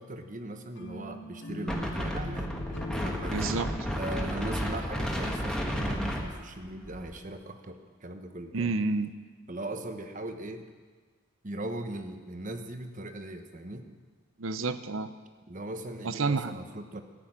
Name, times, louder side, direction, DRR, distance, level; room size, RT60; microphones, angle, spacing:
voice 1, 0.0-3.4 3.9-8.7 9.5-10.7 11.4-13.9 15.5-17.0, right 1 dB, 40° right, 7 dB, 1.1 m, -39 dB
sound 1, 0.7-5.8, left 2 dB, 60° left, 1.0 m, -43 dB
Wind, 1.7-7.2, equal, 5° left, 1.5 m, -32 dB
voice 2, 3.3-3.7 8.5-9.1 14.4-15.1 16.0-16.5, right 3 dB, 70° right, 12 dB, 0.7 m, -29 dB
14.5 x 8.4 x 10.0 m, 1.5 s
head